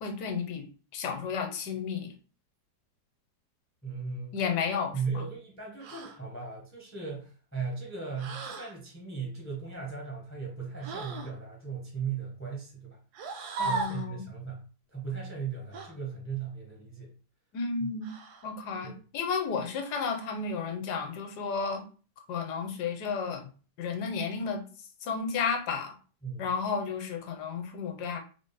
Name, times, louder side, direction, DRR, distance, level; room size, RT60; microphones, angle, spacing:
voice 1, 0.0-0.7 0.9-2.1 4.3-5.0 13.6-14.2 17.5-18.1 18.4-21.8 22.3-23.5 23.8-24.6 25.0-25.9 26.4-28.2, left 5 dB, 75° left, 5 dB, 1.2 m, -32 dB
voice 2, 3.8-4.4 4.9-13.0 13.6-14.6 14.9-17.1 17.8-17.9 18.8-19.0 26.2-26.5, right 5 dB, 20° left, -1 dB, 0.3 m, -37 dB
sound 1, 5.8-6.2 8.2-8.7 10.8-11.3 13.1-14.1 15.7-15.9 18.0-18.5 19.9-20.4, right 4 dB, 70° right, 1.1 m, -37 dB
3.6 x 2.0 x 3.9 m, 0.37 s
omnidirectional pair, 1.9 m